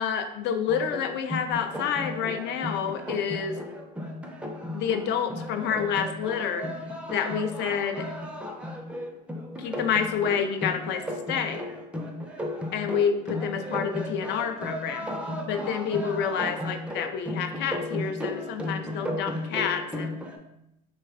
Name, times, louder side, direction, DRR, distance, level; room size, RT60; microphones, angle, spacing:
voice 1, 0.0-3.6 4.7-6.7 7.1-8.1 9.6-11.6 12.7-15.1 15.5-20.2, left 7 dB, 55° left, 7 dB, 0.5 m, -28 dB
sound 1, 0.7-20.4, left 1 dB, 5° right, 0.5 m, -35 dB
3.1 x 2.3 x 3.5 m, 0.86 s
supercardioid pair, 90°, 21 cm